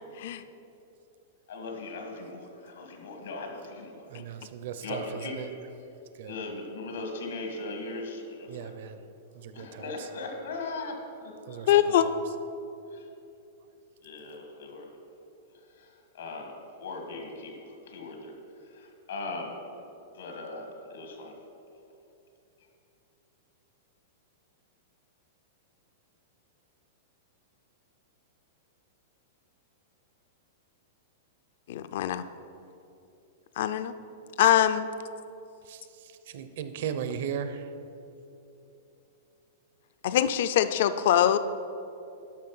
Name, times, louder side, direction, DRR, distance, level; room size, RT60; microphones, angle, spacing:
voice 1, 1.5-4.1 4.8-5.4 6.3-8.7 9.5-11.7 11.9-12.1 12.9-13.1 14.0-14.9 15.8-18.3 18.7-19.6 20.1-21.3, left 3 dB, 85° left, 3 dB, 1.8 m, -39 dB
voice 2, 4.1-5.5 6.1-6.3 8.5-9.0 9.3-10.1 11.5-12.2 35.7-35.8 36.3-37.7, right 8 dB, 55° right, 10 dB, 0.7 m, -37 dB
voice 3, 11.7-12.1 31.7-32.2 33.6-33.9 34.4-34.9 40.0-41.4, left 11 dB, 55° left, 12 dB, 0.4 m, -23 dB
12.0 x 6.0 x 5.6 m, 2.8 s
supercardioid pair, 170°, 0 cm